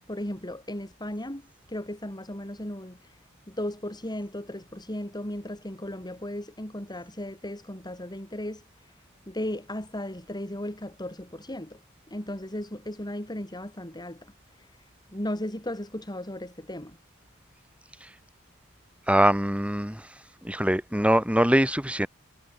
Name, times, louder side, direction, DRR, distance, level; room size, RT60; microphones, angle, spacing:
voice 1, 0.1-3.2 3.5-11.8 12.1-17.0, left 1 dB, 20° left, 7.2 m, -36 dB
voice 2, 19.1-20.0 20.4-22.1, right 1 dB, 5° right, 6.4 m, -23 dB
head